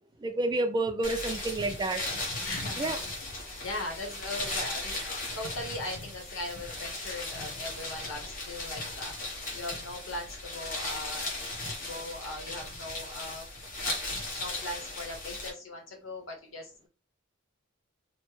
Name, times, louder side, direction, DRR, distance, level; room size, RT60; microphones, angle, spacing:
voice 1, 0.2-2.0 2.8-3.0, right 2 dB, 20° right, 0.3 m, -29 dB
sound 1, 1.0-15.5, left 2 dB, 45° left, 1.0 m, -37 dB
voice 2, 1.5-3.3 3.6-9.2 9.5-13.5 14.1-16.9, left 2 dB, 85° left, 1.0 m, -40 dB
3.1 x 2.1 x 3.1 m
head